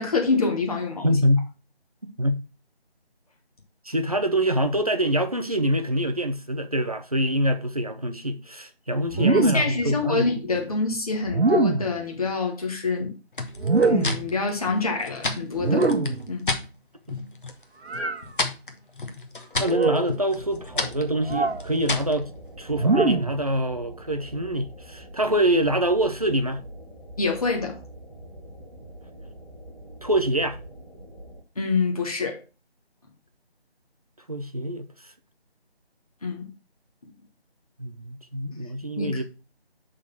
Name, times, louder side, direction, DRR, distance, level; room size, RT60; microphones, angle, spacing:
voice 1, 0.0-1.2 9.2-13.1 13.8-15.9 16.3-16.5 27.2-27.8 31.6-32.4 36.2-36.5 37.0-37.1 39.0-39.2, left 4 dB, 35° left, 1.4 m, -26 dB
voice 2, 1.0-1.5 2.2-2.4 3.8-10.3 19.6-22.3 22.6-26.6 30.0-30.6 34.3-34.9 37.8-39.2, right 1 dB, 35° right, 0.6 m, -25 dB
sound 1, 9.1-9.8 11.3-12.0 13.6-14.3 15.6-16.3 17.9-18.2 19.6-20.1 21.3-21.6 22.7-23.4, right 3 dB, 85° right, 1.1 m, -23 dB
sound 2, 13.3-16.7 17.1-17.6 17.9-22.2, left 3 dB, 55° left, 1.1 m, -31 dB
sound 3, 20.3-31.4, right 1 dB, 5° right, 1.9 m, -44 dB
6.3 x 3.7 x 5.8 m
figure-of-eight pair, 175°, 32 cm